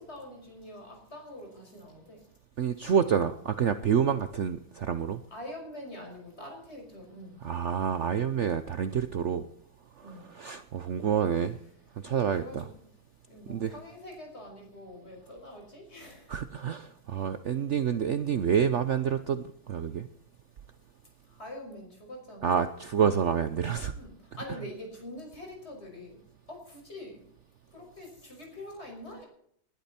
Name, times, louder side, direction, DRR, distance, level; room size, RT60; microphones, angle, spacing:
voice 1, 0.0-2.3 5.3-7.5 10.0-10.3 11.0-11.1 12.3-12.9 13.3-16.4 21.2-22.7 23.9-26.2 26.5-27.2 27.7-29.3, left 1 dB, 30° left, 1 dB, 5.9 m, -45 dB
voice 2, 2.6-5.2 7.4-9.4 10.0-11.6 12.0-12.6 13.5-13.8 16.3-20.1 22.4-23.9, right 7 dB, 70° right, 11 dB, 0.6 m, -28 dB
20.0 x 12.0 x 4.3 m, 0.68 s
omnidirectional pair, 2.2 m